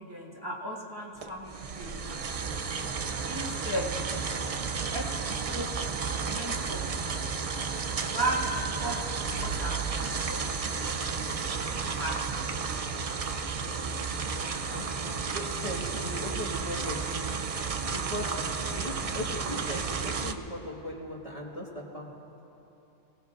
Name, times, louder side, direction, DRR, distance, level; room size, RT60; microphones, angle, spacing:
voice 1, 0.0-2.2 3.3-3.9 4.5-7.2 8.0-12.3, right 1 dB, 15° right, -5 dB, 1.6 m, -37 dB
sound 1, 1.2-20.3, right 5 dB, 50° right, 0.4 m, -32 dB
voice 2, 14.5-14.9 15.3-17.3 17.9-22.4, left 1 dB, 25° left, -3 dB, 1.7 m, -39 dB
27.0 x 18.5 x 2.5 m, 3.0 s
omnidirectional pair, 1.4 m